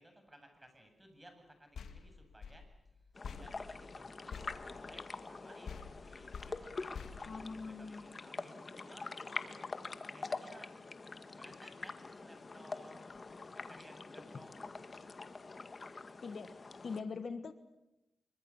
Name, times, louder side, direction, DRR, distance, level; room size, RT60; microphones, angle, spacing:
voice 1, 0.0-9.2 10.1-10.8 11.3-15.3, equal, 15° right, 6 dB, 7.8 m, -59 dB
sound 1, 1.7-5.4 5.6-8.1, left 6 dB, 85° left, 2.3 m, -49 dB
sound 2, 3.2-17.0, left 3 dB, 40° left, 1.9 m, -45 dB
voice 2, 7.3-8.1 16.2-17.5, left 4 dB, 60° left, 10 dB, 1.7 m, -43 dB
25.5 x 24.0 x 7.4 m, 0.89 s
cardioid pair, 80°, 0 cm